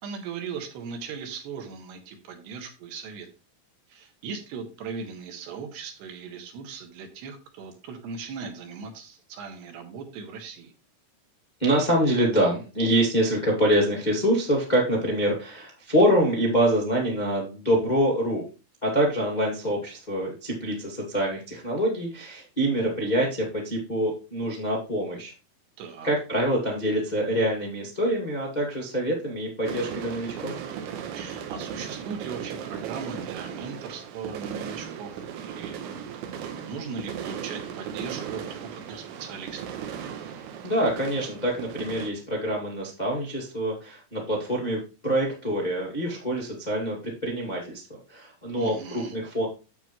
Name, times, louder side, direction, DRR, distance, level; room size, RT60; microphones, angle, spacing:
voice 1, 0.0-3.3 3.9-10.7 25.8-26.1 31.1-35.8 36.3-39.6 48.6-49.1, right 5 dB, 70° right, 4 dB, 3.3 m, -38 dB
voice 2, 11.6-18.4 18.8-25.3 26.0-30.5 40.6-49.5, right 1 dB, 80° left, -2 dB, 0.4 m, -25 dB
sound 1, 29.7-42.1, right 8 dB, 85° right, 3.4 m, -37 dB
9.3 x 7.7 x 3.1 m, 0.32 s
omnidirectional pair, 5.3 m